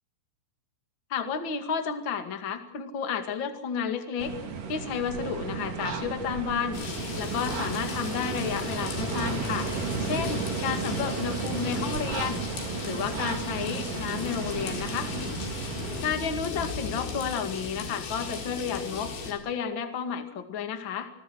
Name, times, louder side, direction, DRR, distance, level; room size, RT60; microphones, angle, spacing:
voice 1, 1.1-4.3 4.7-6.8 7.2-9.7 10.0-12.5 12.8-15.1 16.0-21.1, left 7 dB, 40° left, 8 dB, 2.0 m, -31 dB
sound 1, 4.2-16.0, right 5 dB, 50° right, 3.9 m, -34 dB
sound 2, 6.7-19.3, left 4 dB, 90° left, 6.5 m, -36 dB
28.0 x 21.0 x 6.3 m, 0.74 s
omnidirectional pair, 5.1 m